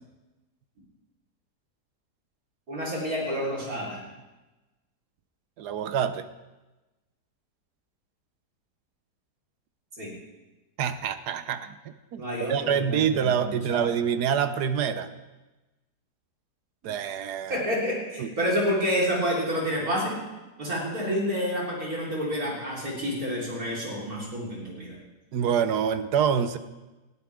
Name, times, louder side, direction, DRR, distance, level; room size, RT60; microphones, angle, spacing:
voice 1, 2.7-4.0 10.0-10.1 12.2-13.9 17.5-20.2 20.6-25.0, equal, 60° right, -4 dB, 4.5 m, -29 dB
voice 2, 5.6-6.3 10.8-12.2 12.5-15.1 16.8-17.6 18.2-18.3 25.3-26.6, right 8 dB, 75° right, 11 dB, 1.3 m, -26 dB
20.0 x 14.0 x 3.6 m, 1.1 s
omnidirectional pair, 1.8 m